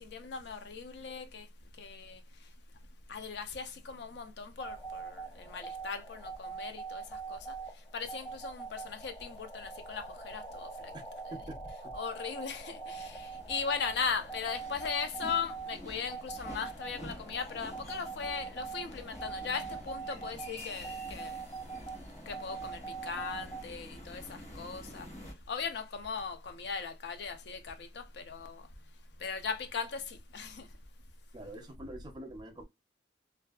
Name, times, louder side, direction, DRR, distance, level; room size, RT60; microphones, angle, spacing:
voice 1, 0.0-1.4 1.8-2.2 3.1-7.0 7.3-7.4 7.9-10.7 11.9-21.4 22.3-24.2 24.6-25.1 25.5-28.6 29.2-30.7, left 5 dB, 60° left, 0.4 m, -38 dB
sound 1, 4.6-23.6, right 5 dB, 20° left, 0.7 m, -44 dB
voice 2, 11.3-11.7 31.3-32.6, right 1 dB, 25° right, 0.4 m, -45 dB
sound 2, 12.9-25.3, equal, 35° left, 1.2 m, -49 dB
2.5 x 2.2 x 2.3 m
head